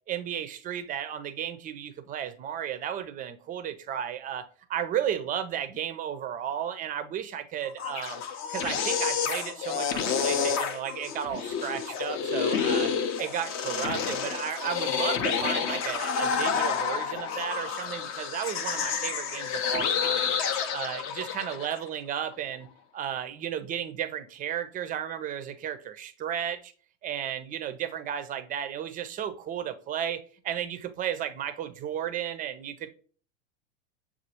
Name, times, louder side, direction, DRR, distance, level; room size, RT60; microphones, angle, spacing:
voice 1, 0.1-4.4 4.7-8.2 8.5-12.9 13.2-20.3 20.7-22.7 22.9-26.7 27.0-32.9, right 9 dB, 25° right, 10 dB, 0.4 m, -34 dB
sound 1, 7.6-21.8, left 7 dB, 35° left, 0.5 m, -29 dB
6.6 x 2.4 x 2.8 m, 0.41 s
hypercardioid pair, 105°, 37 cm